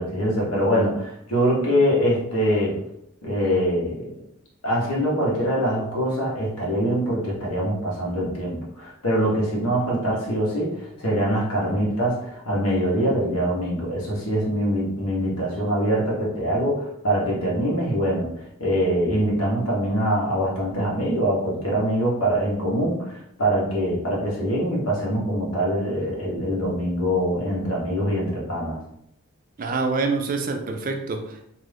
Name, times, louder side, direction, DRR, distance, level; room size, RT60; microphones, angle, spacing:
voice 1, 0.0-2.8 3.2-4.1 4.6-18.3 18.6-28.8, equal, 85° left, -4 dB, 1.1 m, -24 dB
voice 2, 29.6-31.4, right 4 dB, 40° right, 5 dB, 0.3 m, -26 dB
2.6 x 2.5 x 3.3 m, 0.79 s
head